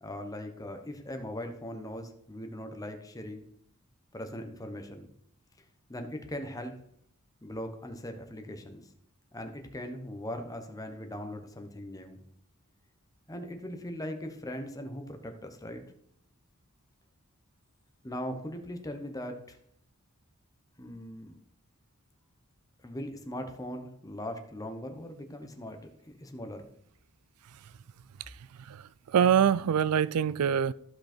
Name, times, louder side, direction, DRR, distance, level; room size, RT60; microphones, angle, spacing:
voice 1, 0.0-3.4 4.1-5.1 5.9-6.8 7.4-8.9 9.3-12.2 13.3-15.8 18.0-19.6 20.8-21.4 22.8-25.8 26.1-26.7, left 1 dB, 15° left, 1.1 m, -40 dB
voice 2, 28.6-30.7, right 8 dB, 90° right, 0.4 m, -25 dB
14.5 x 5.4 x 4.4 m
head